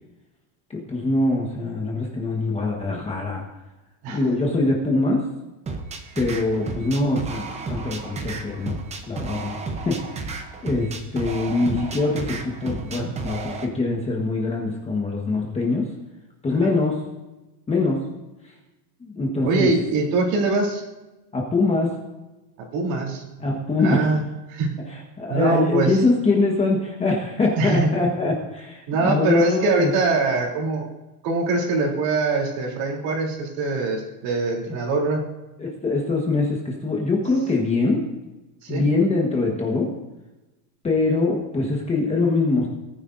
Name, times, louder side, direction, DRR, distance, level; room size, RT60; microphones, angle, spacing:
voice 1, 0.7-3.4 4.1-5.2 6.2-8.7 9.1-9.5 9.8-10.0 10.6-15.9 16.4-17.0 17.7-18.0 19.0-19.7 21.3-21.9 23.4-24.1 24.9-29.9 35.6-38.0 38.7-39.9 40.8-42.7, left 3 dB, 15° left, -1 dB, 1.3 m, -23 dB
sound 1, 5.7-13.7, right 4 dB, 15° right, 0.7 m, -33 dB
voice 2, 19.4-20.8 22.7-23.2 23.8-24.2 24.5-24.7 25.3-26.0 27.5-27.9 28.9-30.9 31.2-35.2 38.6-38.9, right 3 dB, 50° right, 0 dB, 3.2 m, -23 dB
19.0 x 10.0 x 2.6 m, 1.0 s
supercardioid pair, 160°, 48 cm